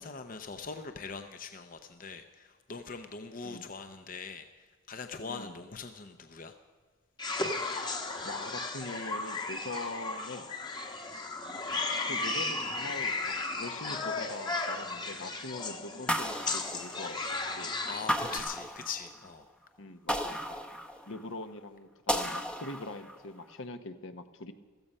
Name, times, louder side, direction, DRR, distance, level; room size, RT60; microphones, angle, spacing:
voice 1, 0.0-6.6 17.9-19.5, left 5 dB, 40° left, 7 dB, 0.7 m, -42 dB
voice 2, 5.3-5.6 8.2-10.5 11.7-11.8 12.1-13.1 13.6-17.8 19.8-20.4 21.1-24.5, left 2 dB, 65° left, 9 dB, 1.0 m, -42 dB
sound 1, 7.2-18.4, left 3 dB, 20° left, 1.1 m, -35 dB
sound 2, 16.1-17.4 18.1-19.3 20.1-21.3 22.1-23.3, equal, 5° left, 0.7 m, -34 dB
16.0 x 14.0 x 5.4 m, 1.5 s
head